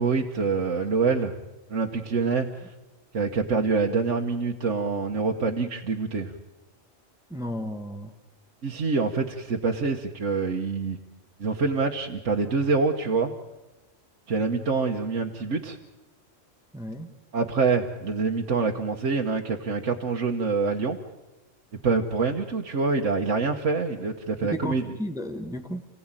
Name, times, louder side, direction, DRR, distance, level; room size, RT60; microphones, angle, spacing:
voice 1, 0.0-1.4 1.7-2.7 3.1-6.3 8.6-11.0 11.4-13.3 14.3-15.8 17.3-21.0 21.8-24.9, right 4 dB, 75° right, 1 dB, 1.6 m, -26 dB
voice 2, 7.3-8.1 16.7-17.1 24.4-25.8, equal, 5° right, 6 dB, 1.2 m, -33 dB
29.0 x 17.0 x 8.9 m, 1.1 s
omnidirectional pair, 1.3 m